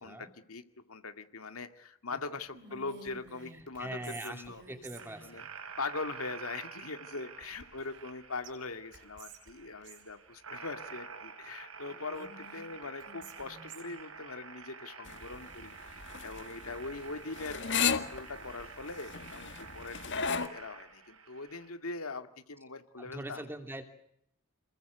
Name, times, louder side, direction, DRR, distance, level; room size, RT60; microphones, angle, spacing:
voice 1, 0.0-4.6 5.2-5.4 5.8-23.4, left 3 dB, 80° left, 8 dB, 2.1 m, -42 dB
Whispering, 2.5-5.4 7.4-8.1 8.4-8.5 8.9-10.1 11.9-14.0, right 4 dB, 60° right, 5.8 m, -52 dB
voice 2, 3.4-5.5 23.0-23.8, right 1 dB, 10° right, 6 dB, 2.9 m, -43 dB
sound 1, 5.0-21.7, right 5 dB, 75° right, 5.2 m, -49 dB
sound 2, 15.1-20.5, left 6 dB, 60° left, 1.8 m, -34 dB
27.5 x 21.5 x 7.9 m, 0.74 s
head